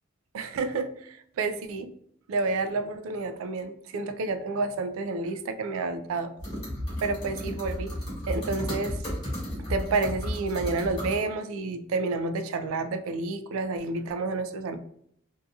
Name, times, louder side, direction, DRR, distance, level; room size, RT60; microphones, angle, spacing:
voice 1, 0.3-1.9 2.3-6.3 7.0-7.9 8.3-9.0 9.7-14.8, right 3 dB, 90° right, 9 dB, 0.3 m, -30 dB
sound 1, 6.4-11.2, left 1 dB, 20° left, 1.2 m, -33 dB
2.7 x 2.6 x 2.3 m, 0.68 s
head